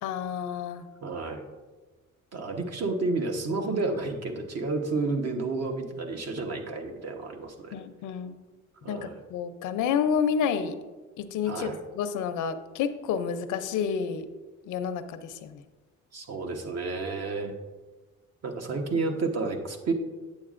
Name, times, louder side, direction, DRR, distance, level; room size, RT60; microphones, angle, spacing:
voice 1, 0.0-0.9 7.7-8.4 8.9-10.8 11.2-14.3 14.7-15.6, left 7 dB, 85° left, 10 dB, 0.6 m, -29 dB
voice 2, 1.0-1.4 2.3-7.7 8.8-9.1 11.5-11.8 16.1-17.5 18.4-19.9, right 3 dB, 60° right, 4 dB, 1.1 m, -31 dB
8.8 x 7.3 x 2.5 m, 1.3 s
cardioid pair, 90°, 30 cm